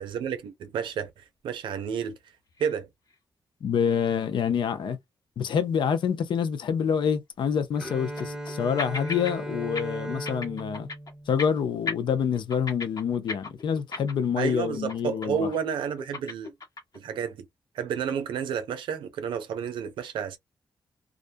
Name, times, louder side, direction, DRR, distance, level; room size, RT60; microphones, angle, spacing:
voice 1, 0.0-2.2 2.6-2.9 14.4-16.5 16.9-17.5 17.7-20.4, right 7 dB, 85° right, 0.5 m, -31 dB
sound 1, 2.6-2.8 3.1-3.2 3.8-3.9 7.1-7.2 7.8-8.5 8.8-9.3 9.6-9.8 10.1-11.1 11.4-11.6 11.9-14.4 14.7-14.9 15.2-15.6 15.8-17.0, left 3 dB, 50° left, 1.2 m, -35 dB
voice 2, 3.6-5.0 5.4-10.9 11.3-15.5, left 7 dB, 75° left, 0.6 m, -27 dB
Bowed string instrument, 7.8-11.8, right 1 dB, 10° right, 1.0 m, -37 dB
2.4 x 2.1 x 2.5 m
supercardioid pair, 50°, 8 cm